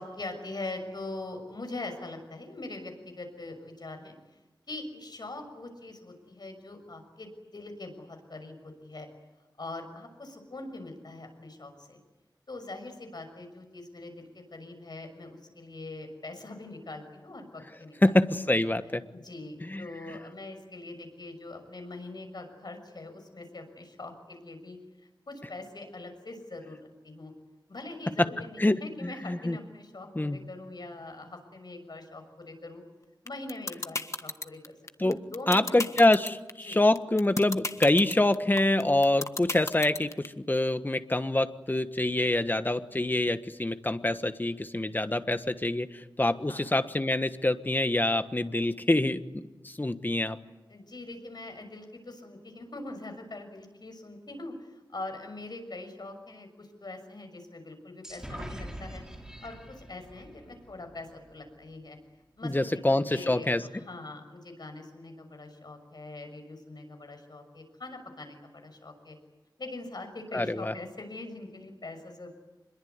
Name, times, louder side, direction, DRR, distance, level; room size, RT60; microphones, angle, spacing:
voice 1, 0.0-4.2 4.7-9.1 9.6-12.0 12.5-18.0 18.4-18.6 19.1-24.8 25.3-27.3 27.7-32.8 33.2-36.0 36.6-36.8 46.5-46.6 50.7-59.0 59.4-62.0 62.4-69.2 69.6-72.3, left 2 dB, 60° left, 6 dB, 6.4 m, -42 dB
voice 2, 18.0-19.0 19.7-19.9 28.2-28.3 28.6-28.8 29.0-29.6 30.1-30.4 35.0-35.2 35.5-45.9 46.2-49.2 49.6-50.4 62.4-63.6 70.3-70.7, left 1 dB, 25° left, 10 dB, 1.4 m, -25 dB
sound 1, 33.3-40.3, left 2 dB, 40° left, 1.5 m, -32 dB
sound 2, 58.0-61.7, equal, 10° right, 5.2 m, -44 dB
26.5 x 22.0 x 9.6 m, 1.1 s
wide cardioid pair, 80°, 8 cm